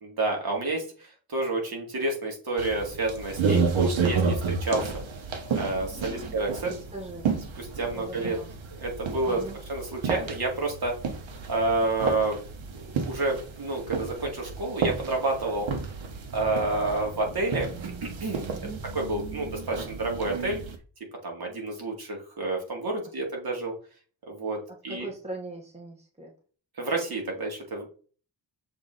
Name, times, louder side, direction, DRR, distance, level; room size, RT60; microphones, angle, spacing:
voice 1, 0.0-4.9 5.5-6.7 7.6-8.4 8.8-9.4 9.7-11.0 11.5-12.4 12.7-15.7 16.3-17.7 18.2-18.4 18.9-20.6 21.2-23.7 24.3-25.1 26.8-27.9, right 2 dB, 55° right, 0 dB, 2.3 m, -29 dB
sound 1, 2.6-20.8, right 5 dB, 85° right, 1.1 m, -31 dB
voice 2, 5.9-6.4 6.7-7.3 7.9-8.5 9.3-9.6 18.5-18.8 24.9-26.3, right 2 dB, 15° right, 0 dB, 1.3 m, -40 dB
6.7 x 4.1 x 3.9 m, 0.40 s
wide cardioid pair, 140°, 45 cm